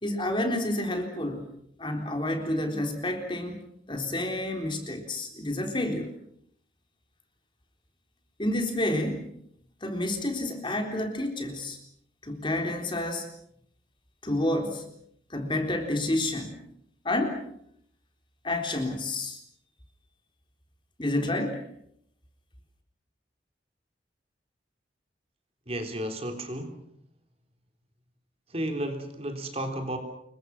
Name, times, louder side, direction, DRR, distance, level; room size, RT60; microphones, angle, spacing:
voice 1, 0.0-1.5 1.8-3.6 3.9-6.1 8.4-9.3 9.8-11.8 12.2-13.3 14.2-14.9 15.3-16.5 17.0-17.4 18.4-19.4 21.0-21.6, left 1 dB, 25° left, 4 dB, 3.9 m, -29 dB
voice 2, 25.7-26.8 28.5-30.0, right 1 dB, 35° right, 5 dB, 3.8 m, -33 dB
28.0 x 23.5 x 6.1 m, 0.70 s
head